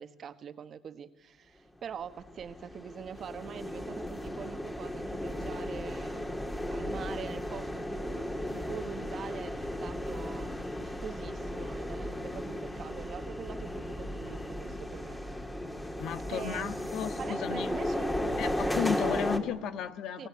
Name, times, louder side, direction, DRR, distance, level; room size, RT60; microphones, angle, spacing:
voice 1, 0.0-15.2 16.3-18.7 20.2-20.3, right 8 dB, 45° right, 11 dB, 1.5 m, -44 dB
sound 1, 2.1-19.4, left 1 dB, 10° left, 2.7 m, -35 dB
voice 2, 16.0-17.7 18.4-20.3, left 8 dB, 65° left, 10 dB, 1.6 m, -34 dB
29.5 x 19.0 x 8.5 m, 1.2 s
supercardioid pair, 90°, 0 cm